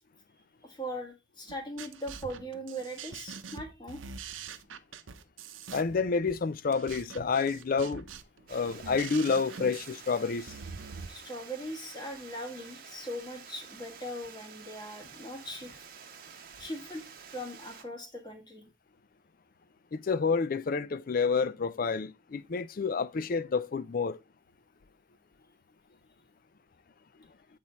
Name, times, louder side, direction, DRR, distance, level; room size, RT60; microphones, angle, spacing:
voice 1, 0.6-4.0 11.1-15.7 16.6-18.6, equal, 20° left, 1.6 m, -40 dB
sound 1, 1.5-11.1, right 6 dB, 80° right, 0.7 m, -44 dB
voice 2, 5.7-8.1 8.5-10.5 19.9-24.2, left 5 dB, 45° left, 0.4 m, -29 dB
Water, 8.5-17.8, right 6 dB, 45° right, 1.1 m, -50 dB
8.2 x 4.4 x 4.1 m
head